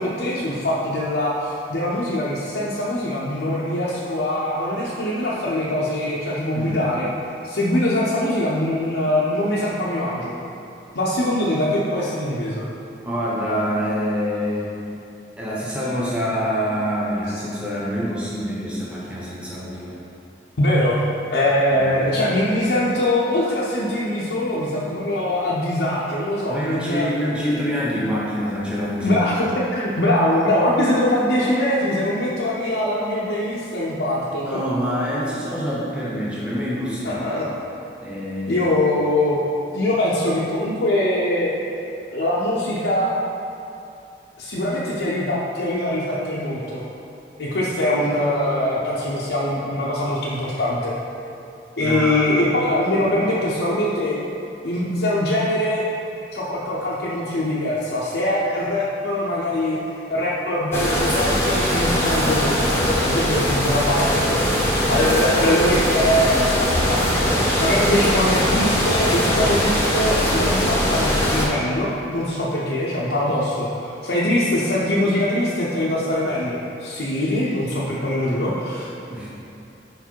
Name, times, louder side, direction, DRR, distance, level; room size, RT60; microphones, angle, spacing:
voice 1, 0.0-7.1 7.4-10.4 10.9-12.7 20.6-21.0 21.3-27.1 29.0-34.5 37.0-37.5 38.5-39.4 39.7-41.5 42.1-43.1 44.4-46.8 47.4-51.0 51.8-54.2 54.6-55.8 56.3-59.8 60.1-64.6 64.9-78.9, left 1 dB, 75° left, -8 dB, 0.7 m, -22 dB
voice 2, 13.0-14.7 15.4-20.0 21.7-21.8 26.5-29.2 34.4-37.3 38.0-38.6 51.8-52.3 79.1-79.3, equal, 5° right, -7 dB, 1.0 m, -26 dB
sound 1, 60.7-71.5, equal, 15° left, 0.8 m, -21 dB
4.9 x 4.6 x 4.5 m, 2.7 s
head